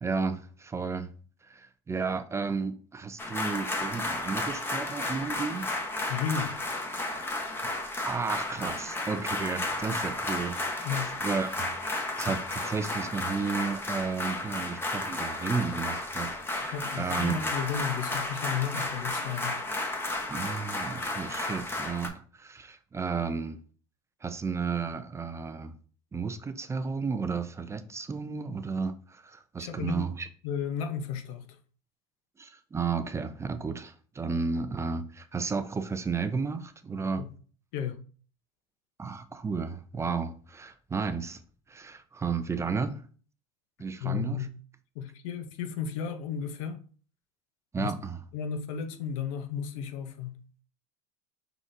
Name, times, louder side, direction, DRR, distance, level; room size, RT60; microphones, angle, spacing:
voice 1, 0.0-1.1 1.4-5.7 8.0-10.9 11.2-17.5 20.3-23.6 24.2-25.8 26.1-30.3 32.4-37.2 39.0-41.4 41.7-43.0 43.8-44.5 47.7-48.2, right 5 dB, 15° right, 0.4 m, -33 dB
sound 1, 3.2-22.1, left 2 dB, 15° left, 0.9 m, -33 dB
voice 2, 6.1-6.6 7.6-7.7 10.8-11.1 16.7-19.6 29.6-30.1 30.4-31.5 37.2-37.3 37.7-37.9 44.0-44.5 45.0-46.8 47.8-47.9 48.3-50.4, left 7 dB, 80° left, 0.8 m, -33 dB
4.8 x 3.9 x 2.6 m
supercardioid pair, 105°, 17 cm